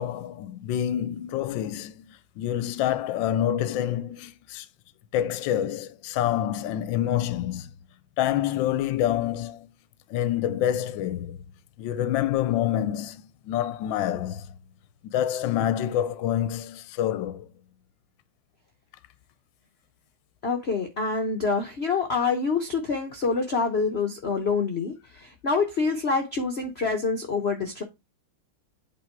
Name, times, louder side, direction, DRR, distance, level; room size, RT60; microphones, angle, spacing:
voice 1, 0.0-4.7 5.1-7.7 8.2-9.7 10.1-11.4 11.8-14.5 15.0-17.5, left 11 dB, 70° left, 1.4 m, -27 dB
voice 2, 20.4-27.8, left 4 dB, 45° left, 0.8 m, -26 dB
8.4 x 3.7 x 4.5 m
omnidirectional pair, 2.3 m